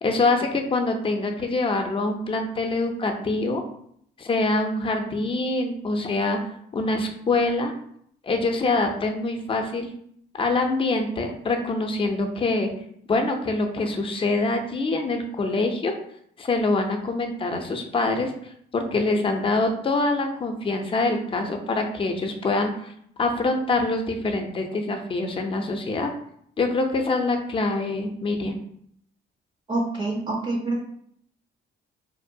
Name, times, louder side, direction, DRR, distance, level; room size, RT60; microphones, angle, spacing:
voice 1, 0.0-3.6 4.2-6.4 6.7-7.7 8.2-9.9 10.3-12.7 13.1-15.9 16.4-18.3 18.7-22.9 23.2-26.1 26.6-28.6, left 2 dB, 25° left, 4 dB, 0.5 m, -25 dB
voice 2, 29.7-30.9, right 2 dB, 25° right, -1 dB, 0.5 m, -26 dB
2.6 x 2.1 x 2.6 m, 0.68 s
cardioid pair, 90°, 20 cm